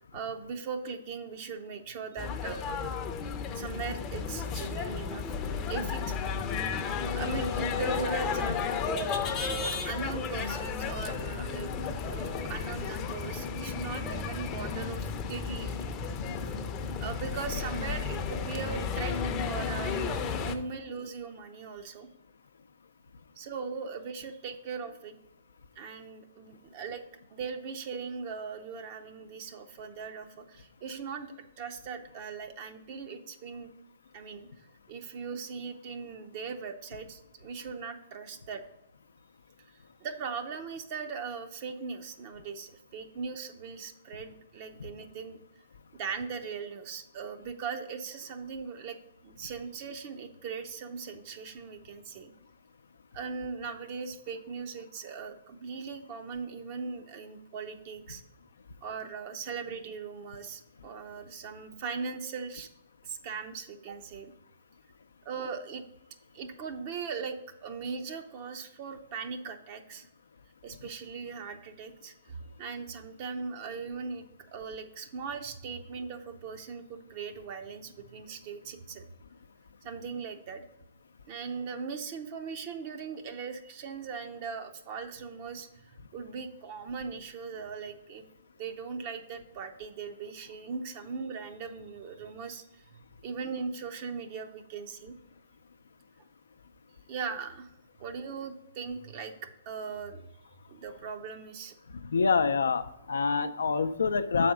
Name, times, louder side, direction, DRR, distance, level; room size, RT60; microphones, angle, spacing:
voice 1, 0.1-2.6 3.5-5.3 5.7-9.0 9.8-11.7 12.1-15.7 17.0-19.2 19.5-22.1 23.4-25.2 25.8-27.0 27.3-33.7 34.1-34.5 34.9-38.6 39.6-45.4 45.9-49.0 49.2-52.3 53.1-58.2 58.8-62.7 63.0-64.3 65.2-65.9 66.3-70.1 70.6-74.3 74.5-79.1 79.8-80.7 81.3-88.2 88.6-95.2 97.1-97.7 98.0-99.3 99.7-100.3 100.7-101.8, right 5 dB, 45° right, 6 dB, 0.6 m, -39 dB
sound 1, 2.2-20.6, left 5 dB, 25° left, 0.6 m, -33 dB
voice 2, 102.0-104.5, left 5 dB, 80° left, 11 dB, 0.4 m, -26 dB
6.9 x 4.2 x 4.9 m, 0.85 s
hypercardioid pair, 130°, 0 cm